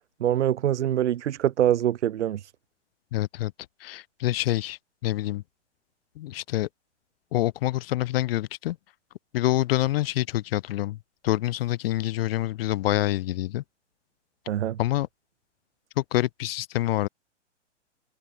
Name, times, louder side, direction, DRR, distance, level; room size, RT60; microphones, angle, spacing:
voice 1, 0.2-2.5 14.5-14.8, right 11 dB, 70° right, 0.8 m, -24 dB
voice 2, 3.1-3.5 3.8-5.4 6.2-6.7 7.3-8.8 9.3-11.0 11.2-13.6 14.8-15.1 16.0-17.1, left 15 dB, 50° left, 4.1 m, -26 dB
hypercardioid pair, 120°, 36 cm